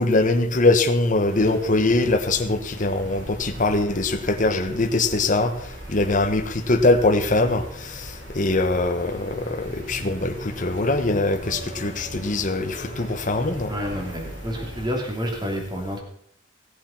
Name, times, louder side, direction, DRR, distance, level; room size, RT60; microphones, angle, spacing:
voice 1, 0.0-5.5 5.9-13.7, left 2 dB, 40° left, 7 dB, 1.1 m, -22 dB
sound 1, 1.3-14.9, right 1 dB, 65° right, 4.1 m, -39 dB
voice 2, 13.7-16.0, equal, 20° right, 1 dB, 2.9 m, -29 dB
17.0 x 7.5 x 5.8 m, 0.66 s
head